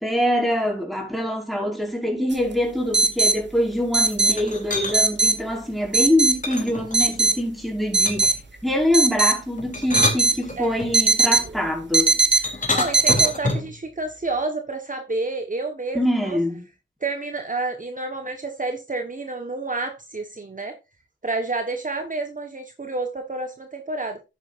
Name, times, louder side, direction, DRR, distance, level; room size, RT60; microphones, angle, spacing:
voice 1, 0.0-8.3 8.6-12.5 15.9-16.6, left 1 dB, ahead, 5.1 m, -24 dB
sound 1, 2.3-2.4 2.9-3.3 3.9-4.3 4.9-5.3 5.9-6.4 6.9-7.3 7.9-8.3 8.9-9.3 9.9-10.3 10.9-11.5 11.9-12.4 12.9-13.3, right 3 dB, 60° right, 1.4 m, -18 dB
sound 2, 4.3-5.0 6.4-7.3 8.0-8.4 9.6-10.9 12.4-13.8, left 2 dB, 35° left, 2.9 m, -27 dB
voice 2, 10.6-10.9 12.7-16.4 17.0-20.8 21.2-24.2, right 3 dB, 40° right, 1.3 m, -29 dB
11.0 x 9.3 x 2.6 m
cardioid pair, 45°, 21 cm